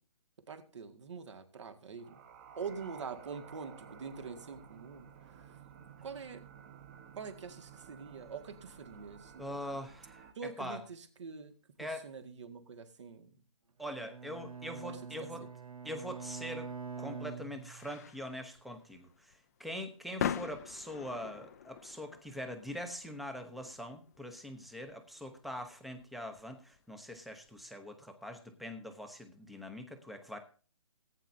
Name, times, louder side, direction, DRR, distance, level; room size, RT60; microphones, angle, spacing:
voice 1, 0.5-2.2 2.6-5.1 6.0-6.5 7.2-9.8 10.4-11.5 11.8-13.3 14.8-15.3, right 5 dB, 55° right, 6 dB, 2.0 m, -45 dB
sound 1, 2.0-10.3, right 7 dB, 30° right, 1.4 m, -54 dB
voice 2, 9.4-10.8 11.8-12.1 13.8-15.4 15.8-16.7 17.0-30.4, equal, ahead, 7 dB, 0.8 m, -43 dB
Bowed string instrument, 13.8-18.2, right 6 dB, 90° right, 1.0 m, -45 dB
sound 2, 16.3-27.6, left 9 dB, 30° left, 0.5 m, -44 dB
19.0 x 9.1 x 2.7 m, 0.38 s
hypercardioid pair, 155°, 18 cm